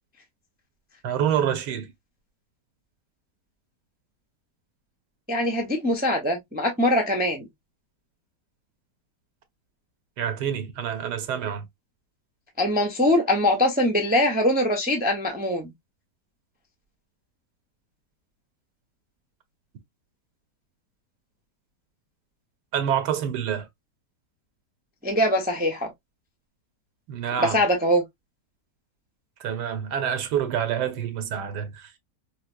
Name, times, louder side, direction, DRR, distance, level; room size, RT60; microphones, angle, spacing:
voice 1, 1.0-1.9 10.2-11.6 22.7-23.6 27.1-27.6 29.4-32.0, right 9 dB, 80° right, 1.4 m, -27 dB
voice 2, 5.3-7.5 12.6-15.7 25.0-25.9 27.4-28.0, left 1 dB, 10° right, 0.5 m, -22 dB
4.9 x 2.0 x 2.4 m
omnidirectional pair, 1.8 m